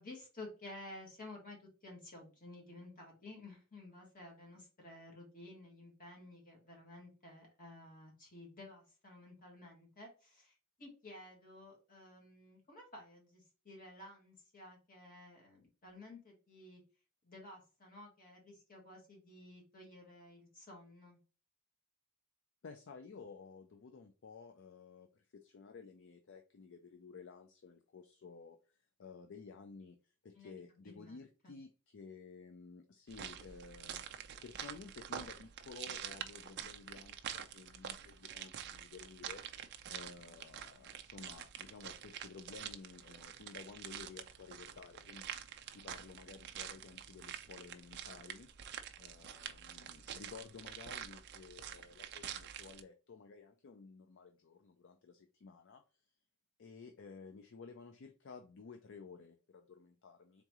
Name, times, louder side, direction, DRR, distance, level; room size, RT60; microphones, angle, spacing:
voice 1, 0.0-16.8 17.2-21.2 30.3-31.2 31.4-31.5 40.2-40.3, left 2 dB, 40° left, 1.8 m, -53 dB
voice 2, 22.6-39.5 39.9-45.4 45.7-48.5 48.9-55.8 56.6-60.4, left 4 dB, 60° left, 0.4 m, -54 dB
sound 1, 33.1-52.8, right 9 dB, 50° right, 0.4 m, -47 dB
3.7 x 3.6 x 3.0 m
head